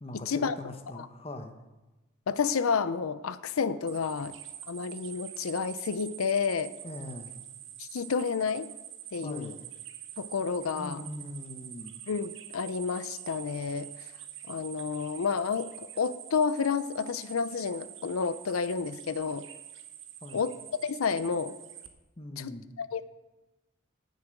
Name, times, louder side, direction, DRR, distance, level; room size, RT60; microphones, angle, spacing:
voice 1, 0.0-1.6 6.8-7.3 9.2-9.7 10.7-12.0 20.2-20.4 22.2-22.7, left 1 dB, 30° left, 7 dB, 1.0 m, -41 dB
voice 2, 2.3-4.4 4.7-6.7 7.8-8.7 9.1-9.5 10.2-11.0 12.1-14.1 14.5-19.5 20.3-21.6 22.4-23.0, left 5 dB, 90° left, 14 dB, 0.5 m, -30 dB
sound 1, 3.9-21.9, right 11 dB, 65° right, 1.1 m, -46 dB
9.7 x 7.2 x 9.2 m, 1.1 s
head